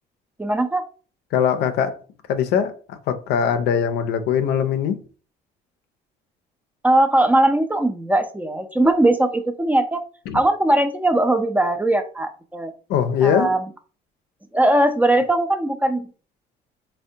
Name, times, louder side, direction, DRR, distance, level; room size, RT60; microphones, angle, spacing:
voice 1, 0.4-0.8 6.8-10.0 10.3-12.7 13.2-13.6 14.5-16.1, right 1 dB, 10° right, 0.4 m, -19 dB
voice 2, 1.3-2.0 2.3-5.0 10.3-10.4 12.9-13.5, left 8 dB, 75° left, 0.4 m, -21 dB
3.4 x 2.1 x 2.7 m
cardioid pair, 110°, 17 cm